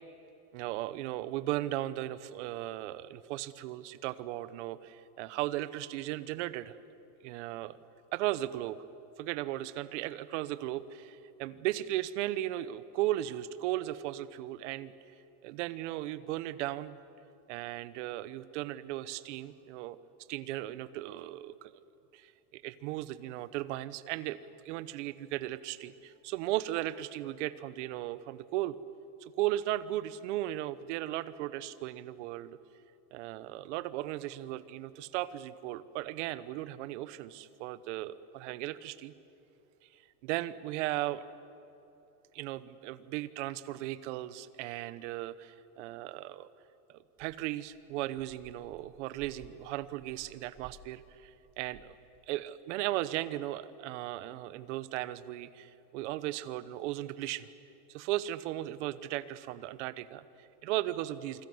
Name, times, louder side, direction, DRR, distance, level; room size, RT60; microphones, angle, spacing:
voice 1, 0.5-6.7 7.2-7.8 8.1-8.8 9.2-14.9 15.4-17.0 17.5-20.0 20.3-21.7 22.1-24.4 24.6-28.7 29.2-32.6 33.1-39.1 40.2-41.2 42.3-46.5 46.9-51.9 52.3-57.5 57.9-61.5, right 15 dB, 50° right, 15 dB, 1.0 m, -36 dB
sound 1, 47.6-52.2 52.5-52.6 53.4-53.5, right 4 dB, 20° right, 1.2 m, -59 dB
28.0 x 21.0 x 7.9 m, 3.0 s
supercardioid pair, 165°, 46 cm